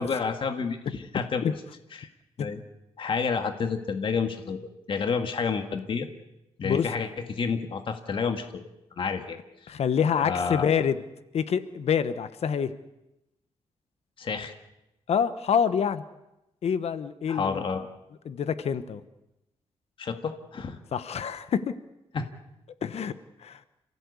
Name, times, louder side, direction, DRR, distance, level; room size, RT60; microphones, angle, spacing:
voice 1, 0.0-1.5 1.9-2.1 2.4-2.6 3.0-4.6 4.9-6.1 6.6-8.6 9.0-9.4 10.2-10.7 14.2-14.5 17.3-17.8 20.0-20.8 22.1-22.3, left 5 dB, 50° left, 6 dB, 1.9 m, -29 dB
voice 2, 9.7-11.0 11.3-12.7 15.1-16.0 16.6-17.6 18.2-19.0 20.9-21.7 22.8-23.1 23.4-23.6, left 7 dB, 65° left, 12 dB, 1.1 m, -26 dB
28.5 x 16.0 x 8.4 m, 0.92 s
wide cardioid pair, 155°, 11 cm